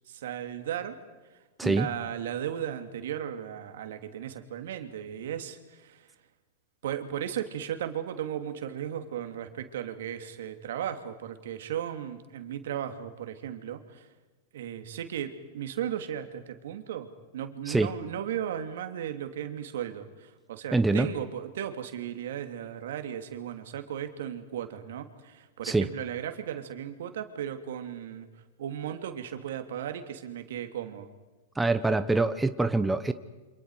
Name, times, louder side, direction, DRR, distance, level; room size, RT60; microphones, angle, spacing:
voice 1, 0.1-1.0 1.6-6.1 6.8-14.1 14.5-17.1 17.3-28.3 28.6-31.1, right 10 dB, 70° right, 7 dB, 2.7 m, -36 dB
voice 2, 20.7-21.1 25.6-25.9 31.6-33.1, right 3 dB, 10° right, 10 dB, 1.1 m, -24 dB
29.5 x 26.5 x 4.9 m, 1.3 s
hypercardioid pair, 110°, 0 cm